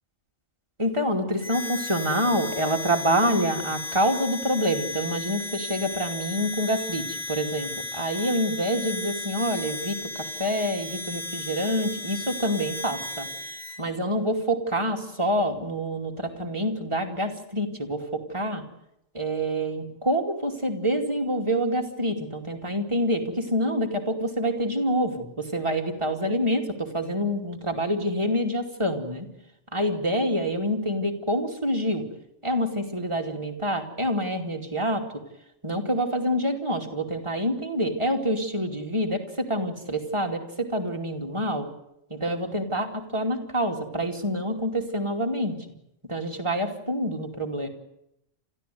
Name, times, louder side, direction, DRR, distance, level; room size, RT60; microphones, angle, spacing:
voice 1, 0.8-13.3 13.8-18.6 19.1-29.3 29.7-32.0 32.4-35.2 35.6-41.7 42.1-45.5 46.1-47.7, equal, 20° right, 2 dB, 2.8 m, -27 dB
Harmonica, 1.4-13.8, left 2 dB, 50° left, 3.3 m, -35 dB
30.0 x 14.0 x 9.4 m, 0.81 s
omnidirectional pair, 1.4 m